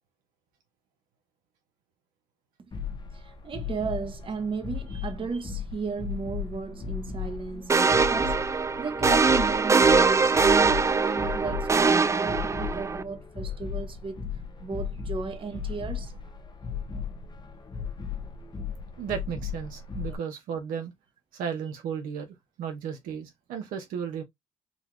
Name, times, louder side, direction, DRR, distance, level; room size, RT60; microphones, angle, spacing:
sound 1, 2.7-20.2, left 7 dB, 30° left, 0.7 m, -36 dB
voice 1, 3.1-10.4 10.7-14.2 14.6-16.1, right 4 dB, 40° right, 0.8 m, -35 dB
sound 2, 7.7-13.0, right 4 dB, 20° right, 0.4 m, -22 dB
voice 2, 19.0-20.9 21.3-24.2, right 7 dB, 85° right, 0.8 m, -34 dB
3.9 x 2.3 x 3.0 m
supercardioid pair, 65°, 14 cm